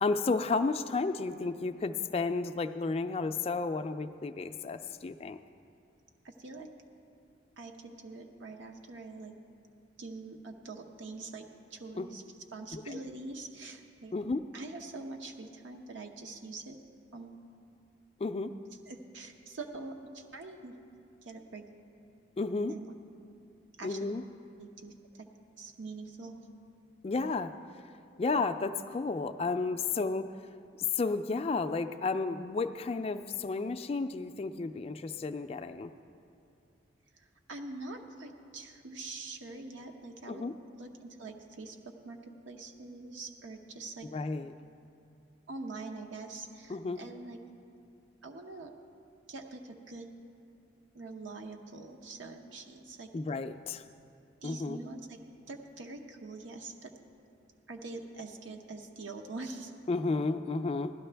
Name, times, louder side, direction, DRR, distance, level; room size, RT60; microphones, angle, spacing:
voice 1, 0.0-5.4 12.0-12.1 12.7-13.0 14.1-14.4 18.2-18.5 22.4-22.7 23.8-24.2 27.0-27.5 28.2-30.3 30.9-35.9 40.3-40.5 44.1-44.5 46.7-47.0 53.1-53.8 54.4-54.8 59.9-60.9, left 3 dB, 30° left, 9 dB, 0.3 m, -32 dB
voice 2, 6.2-6.7 7.6-9.3 10.0-12.2 12.5-14.1 14.5-16.8 17.1-17.4 18.9-20.7 21.2-21.6 22.7-22.9 23.8-24.1 24.6-25.3 25.6-26.4 37.2-40.4 40.8-42.2 42.5-44.1 45.5-47.4 48.2-48.7 49.3-50.1 50.9-53.1 54.4-55.2 55.5-56.9 57.7-59.7, right 3 dB, 85° right, 4 dB, 0.8 m, -44 dB
16.5 x 12.0 x 3.4 m, 2.6 s
head